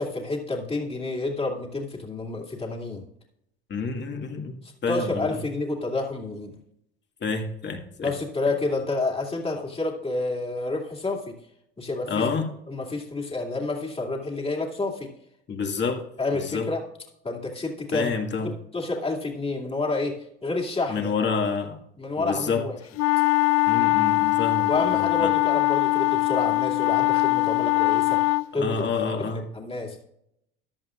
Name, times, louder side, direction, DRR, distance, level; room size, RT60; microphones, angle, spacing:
voice 1, 0.0-3.0 4.9-6.5 8.0-11.4 11.8-12.3 12.7-15.1 16.2-16.8 17.2-18.1 18.4-21.1 22.0-22.8 24.7-28.2 28.5-28.8 29.3-30.0, left 3 dB, 20° left, -1 dB, 2.6 m, -29 dB
voice 2, 3.7-5.4 7.2-8.1 12.1-12.5 15.5-16.0 16.3-16.7 17.9-18.5 20.9-21.8 22.2-22.6 23.7-25.3 28.5-29.4, left 5 dB, 35° left, 4 dB, 2.1 m, -28 dB
sound 1, 23.0-28.5, left 23 dB, 55° left, 0.4 m, -22 dB
15.0 x 11.0 x 2.5 m, 0.76 s
hypercardioid pair, 75°, 32 cm